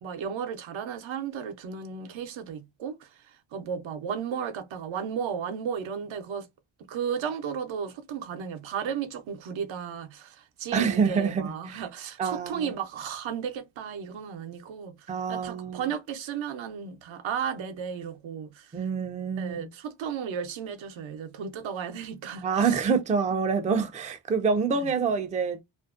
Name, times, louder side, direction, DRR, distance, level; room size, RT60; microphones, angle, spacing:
voice 1, 0.0-3.1 3.5-6.5 6.9-14.9 15.3-18.7 19.4-22.8 24.7-24.9, right 7 dB, 70° right, 0.7 m, -34 dB
voice 2, 10.7-11.8 12.2-12.7 15.1-15.9 18.7-19.7 22.4-25.6, right 5 dB, 15° right, 0.3 m, -26 dB
2.5 x 2.1 x 2.4 m
cardioid pair, 85°, 49 cm